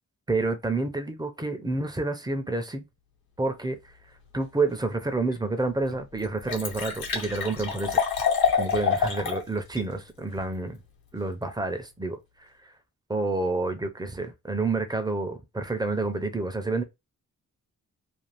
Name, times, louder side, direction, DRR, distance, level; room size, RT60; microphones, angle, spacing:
voice 1, 0.3-2.8 3.4-3.8 4.3-8.0 8.6-10.8 11.1-12.7 13.1-16.8, right 3 dB, 10° right, 0.5 m, -29 dB
Liquid, 5.3-5.4 5.9-6.0 6.2-9.4 9.8-9.9, left 6 dB, 85° left, 1.0 m, -26 dB
2.5 x 2.3 x 3.2 m
wide cardioid pair, 110°, 34 cm